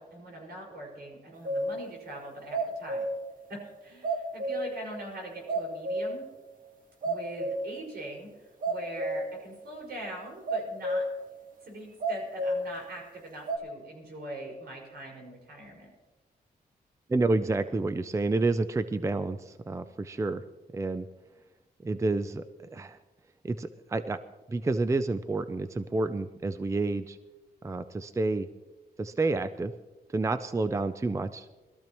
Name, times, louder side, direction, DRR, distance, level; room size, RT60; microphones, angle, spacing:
voice 1, 0.0-3.1 3.5-6.3 7.0-11.1 11.6-15.9, right 1 dB, 75° right, -1 dB, 5.4 m, -42 dB
sound 1, 1.4-1.8 2.3-3.3 3.6-3.7 4.0-4.8 5.2-5.3 5.5-6.3 6.6-6.7 7.0-7.8 8.1-8.3 8.6-9.4 9.7-9.9 10.5-11.2 12.0-12.6 13.5-13.6, right 1 dB, 55° right, 1.6 m, -31 dB
voice 2, 17.1-20.4 20.7-21.1 21.8-22.4 22.7-23.0 23.4-24.2 24.5-27.2 27.6-28.5 29.0-29.7 30.1-31.5, right 3 dB, 20° right, 11 dB, 0.4 m, -29 dB
21.0 x 13.5 x 3.0 m, 1.1 s
wide cardioid pair, 105°, 17 cm